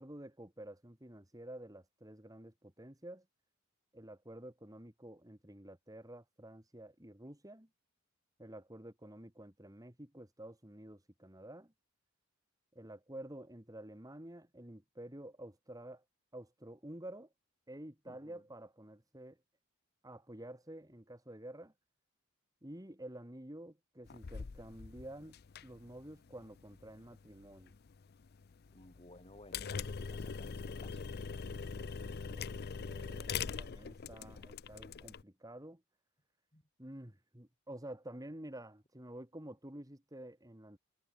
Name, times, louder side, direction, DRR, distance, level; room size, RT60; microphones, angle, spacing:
voice 1, 0.0-3.3 3.9-7.7 8.4-11.7 12.7-16.0 16.3-17.3 17.7-19.4 20.0-21.7 22.6-27.7 32.3-35.8 36.8-40.8, right 1 dB, 15° right, 2.5 m, -50 dB
voice 2, 18.1-18.4 28.7-31.0 36.5-36.6, left 1 dB, 25° left, 7.9 m, -57 dB
sound 1, 24.1-35.2, left 5 dB, 45° left, 0.5 m, -43 dB
head